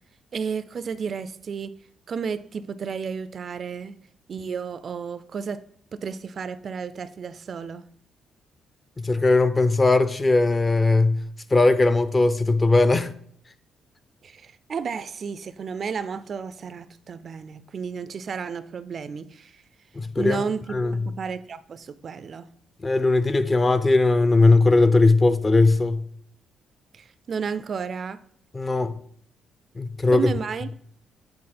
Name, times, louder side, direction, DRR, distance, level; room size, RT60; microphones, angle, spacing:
voice 1, 0.3-1.7 2.1-4.0 4.3-5.6 5.9-7.9 14.2-19.6 20.2-22.5 26.9-28.2 30.1-30.7, right 6 dB, 50° right, 0.4 m, -32 dB
voice 2, 9.0-11.2 11.5-13.1 20.0-20.5 20.7-21.0 22.8-26.0 28.5-28.9 29.8-30.3, left 3 dB, 25° left, 0.5 m, -19 dB
8.6 x 3.6 x 4.2 m
cardioid pair, 90°, 0 cm